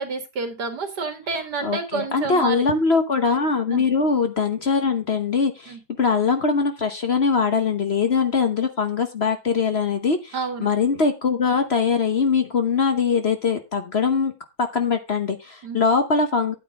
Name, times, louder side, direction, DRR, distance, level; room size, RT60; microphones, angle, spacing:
voice 1, 0.0-2.6 3.7-3.8 5.7-5.8 10.3-10.7 15.6-15.8, right 4 dB, 75° right, 7 dB, 2.4 m, -29 dB
voice 2, 1.6-14.3 14.6-16.5, left 5 dB, 45° left, 7 dB, 1.1 m, -22 dB
10.0 x 8.6 x 3.6 m, 0.26 s
omnidirectional pair, 1.8 m